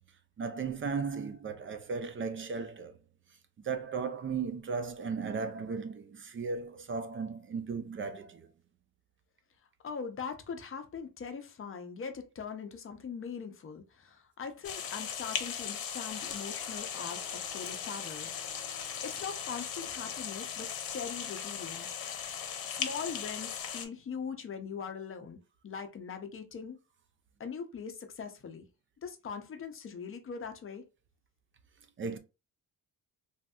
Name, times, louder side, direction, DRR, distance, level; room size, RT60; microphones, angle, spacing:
voice 1, 0.4-2.9 3.6-8.5 32.0-32.2, right 5 dB, 35° right, 0.4 m, -36 dB
voice 2, 9.8-18.3 19.0-22.0 22.7-25.4 25.6-26.8 27.4-28.6 29.0-30.8, left 6 dB, 35° left, 0.6 m, -41 dB
sound 1, 14.6-23.9, left 8 dB, 65° left, 0.8 m, -38 dB
Guitar, 16.1-24.9, right 1 dB, 90° right, 1.9 m, -58 dB
3.4 x 2.6 x 2.2 m
cardioid pair, 145°, 37 cm